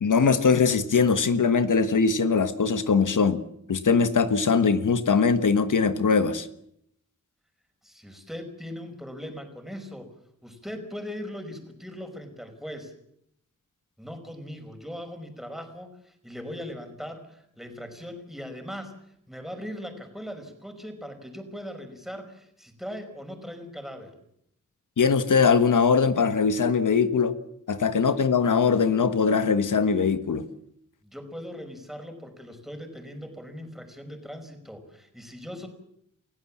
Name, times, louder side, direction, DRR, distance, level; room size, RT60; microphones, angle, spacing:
voice 1, 0.0-3.4 3.7-6.5 25.0-27.3 27.7-30.4, left 5 dB, 85° left, 11 dB, 1.5 m, -21 dB
voice 2, 7.8-10.1 10.4-12.9 14.0-18.9 19.3-24.2 31.0-35.7, equal, ahead, 6 dB, 5.3 m, -39 dB
29.0 x 16.0 x 7.4 m, 0.73 s
wide cardioid pair, 80°, 30 cm